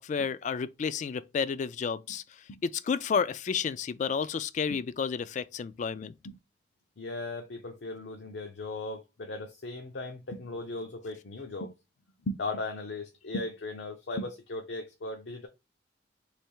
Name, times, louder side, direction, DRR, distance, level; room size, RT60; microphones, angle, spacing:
voice 1, 0.0-2.2 2.6-6.1, left 6 dB, 45° left, 0.3 m, -31 dB
voice 2, 7.0-11.7 12.2-15.5, left 2 dB, 85° left, 0.7 m, -37 dB
3.4 x 3.1 x 4.5 m
head